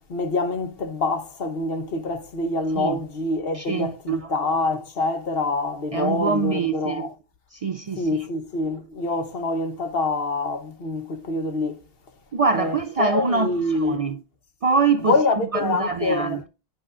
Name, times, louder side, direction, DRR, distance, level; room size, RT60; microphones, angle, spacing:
voice 1, 0.1-7.1 8.0-11.8 12.5-14.0 15.0-16.4, left 3 dB, 70° left, 1.2 m, -26 dB
voice 2, 3.5-4.2 5.9-7.1 7.5-8.1 12.3-14.2 14.6-15.2 15.5-16.5, right 5 dB, 50° right, 0.4 m, -24 dB
8.8 x 6.3 x 2.4 m
omnidirectional pair, 1.0 m